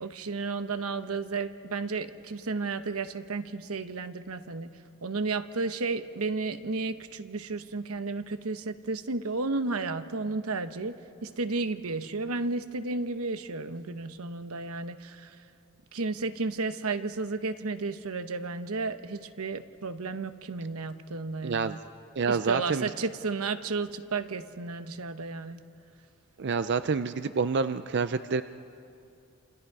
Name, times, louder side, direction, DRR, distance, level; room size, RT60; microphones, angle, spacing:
voice 1, 0.0-4.7 5.0-11.0 11.2-15.4 15.9-21.8 22.3-25.6, right 3 dB, 90° right, 10 dB, 1.0 m, -33 dB
voice 2, 21.4-21.8 22.2-22.9 26.4-28.4, right 5 dB, 55° right, 11 dB, 0.5 m, -28 dB
29.5 x 27.5 x 4.8 m, 2.6 s
head